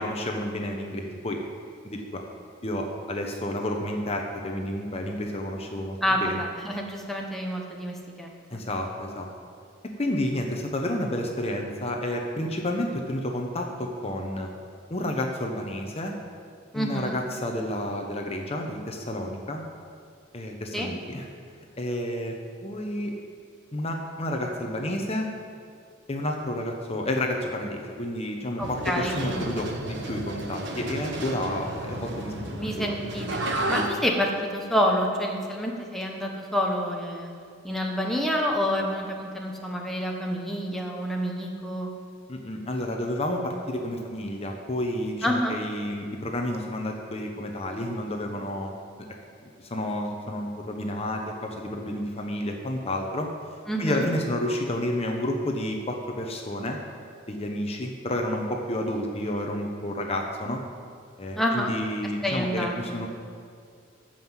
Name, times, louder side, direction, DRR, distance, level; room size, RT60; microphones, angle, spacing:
voice 1, 0.0-1.4 1.8-2.2 2.6-6.4 8.5-9.3 10.0-14.5 14.9-16.1 16.7-19.6 20.3-21.3 21.8-22.3 22.6-23.1 23.7-25.3 26.1-32.9 42.3-48.7 49.6-53.3 53.8-56.8 57.3-60.6 61.2-63.1, left 1 dB, 30° left, 2 dB, 1.0 m, -30 dB
voice 2, 6.0-6.3 6.6-8.6 16.7-17.2 20.7-20.9 28.6-29.4 32.5-33.3 33.7-37.3 37.6-41.9 45.2-45.6 53.7-54.1 61.4-61.7 62.2-63.1, equal, ahead, 0 dB, 1.1 m, -28 dB
sound 1, 28.6-33.9, right 1 dB, 65° right, 1.3 m, -32 dB
14.0 x 5.7 x 7.3 m, 2.3 s
head